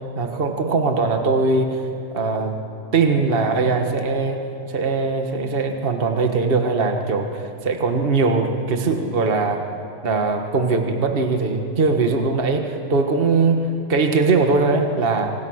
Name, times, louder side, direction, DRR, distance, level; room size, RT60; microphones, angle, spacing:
voice 1, 0.2-1.8 2.1-2.5 2.9-4.4 4.7-9.6 10.0-15.3, right 4 dB, 40° right, 4 dB, 1.7 m, -20 dB
26.5 x 26.0 x 6.5 m, 2.6 s
omnidirectional pair, 1.6 m